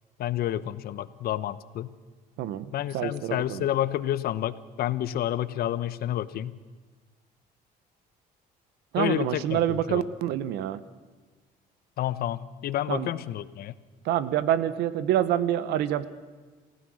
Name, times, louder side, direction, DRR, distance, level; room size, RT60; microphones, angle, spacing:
voice 1, 0.2-1.9 2.7-6.5 9.0-10.1 12.0-13.7, left 12 dB, 65° left, 15 dB, 0.9 m, -29 dB
voice 2, 2.4-2.7 2.9-3.6 8.9-10.8 12.9-13.1 14.1-16.1, right 11 dB, 85° right, 15 dB, 1.1 m, -26 dB
28.5 x 15.5 x 6.4 m, 1.4 s
cardioid pair, 110°, 17 cm